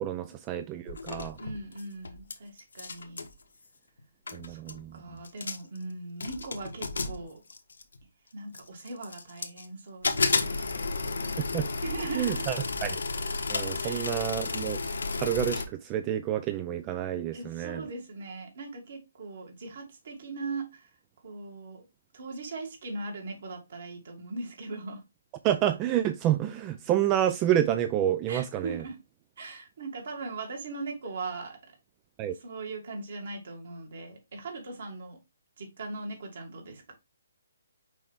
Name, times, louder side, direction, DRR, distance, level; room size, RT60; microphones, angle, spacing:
voice 1, 0.0-1.4 4.3-5.0 11.5-11.7 12.1-12.6 12.8-13.0 13.5-14.8 15.2-17.8 25.4-28.8 32.2-32.3, right 11 dB, 25° right, 0.4 m, -28 dB
sound 1, 0.9-2.3 2.6-3.3 4.0-4.1 4.3-4.8 5.2-5.8 6.2-8.0 8.5-9.7 10.0-15.7, left 3 dB, 75° left, 1.2 m, -32 dB
voice 2, 1.4-3.3 4.5-4.6 4.9-7.4 8.3-10.8 11.8-12.5 13.8-14.1 17.3-20.9 21.2-21.8 22.1-25.0 28.3-29.0 29.4-31.6 32.3-35.2 35.6-36.9, right 3 dB, 60° right, 2.7 m, -39 dB
6.1 x 4.4 x 3.5 m
hypercardioid pair, 145°, 0 cm